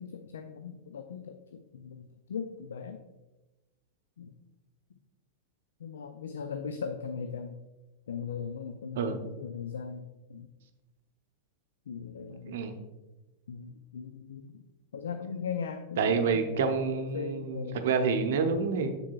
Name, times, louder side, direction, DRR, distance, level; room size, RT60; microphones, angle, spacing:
voice 1, 0.0-3.0 4.2-4.3 5.8-7.6 8.1-10.5 11.9-12.7 13.5-14.6 14.9-16.8 17.1-17.8, left 6 dB, 65° left, 7 dB, 0.4 m, -39 dB
voice 2, 12.4-12.8 16.0-18.9, right 5 dB, 55° right, 7 dB, 0.7 m, -28 dB
7.3 x 6.9 x 2.4 m, 1.1 s
figure-of-eight pair, 90°, 0 cm